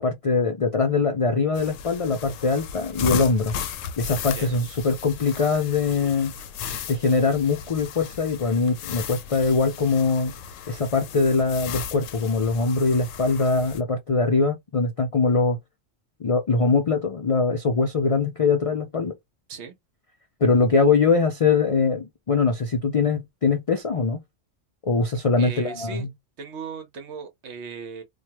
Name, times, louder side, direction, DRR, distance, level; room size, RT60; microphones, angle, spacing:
voice 1, 0.0-3.5 4.0-6.3 6.9-10.3 10.7-15.6 16.2-19.1 20.4-24.2 24.8-26.1, left 4 dB, 60° left, 0.3 m, -22 dB
sound 1, 1.5-13.8, left 7 dB, 85° left, 0.9 m, -36 dB
voice 2, 25.4-26.1 26.4-28.0, right 5 dB, 65° right, 1.1 m, -37 dB
3.1 x 2.2 x 2.9 m
omnidirectional pair, 1.3 m